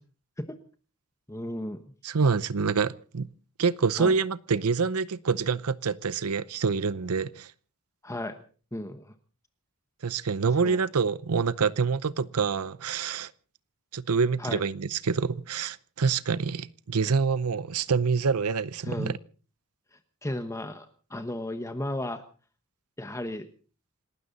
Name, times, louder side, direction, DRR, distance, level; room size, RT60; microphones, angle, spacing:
voice 1, 1.3-1.8 4.0-4.1 8.0-8.4 8.7-9.1 10.6-10.8 14.4-14.6 18.8-19.1 20.2-22.2 23.0-23.5, left 1 dB, 15° left, 1.1 m, -34 dB
voice 2, 2.0-3.3 3.6-7.5 10.0-13.3 13.9-19.1, right 5 dB, 85° right, 0.7 m, -26 dB
28.0 x 12.5 x 4.1 m
head